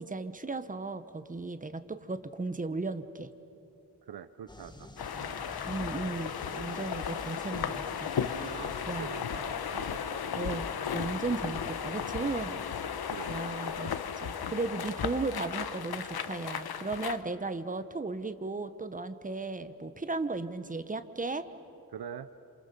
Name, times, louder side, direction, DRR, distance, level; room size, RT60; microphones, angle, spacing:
voice 1, 0.0-3.3 5.7-8.6 8.9-9.1 10.4-10.7 10.9-12.5 13.3-13.9 14.2-21.5, right 3 dB, 20° right, 11 dB, 1.1 m, -35 dB
voice 2, 4.0-4.9 5.1-5.4 8.5-10.6 13.1-13.7 21.9-22.3, right 8 dB, 85° right, 10 dB, 0.8 m, -45 dB
sound 1, 4.5-13.2, left 2 dB, 10° left, 1.7 m, -50 dB
sound 2, 5.0-17.2, left 7 dB, 90° left, 1.0 m, -35 dB
28.0 x 28.0 x 6.9 m, 2.8 s
wide cardioid pair, 120°, 36 cm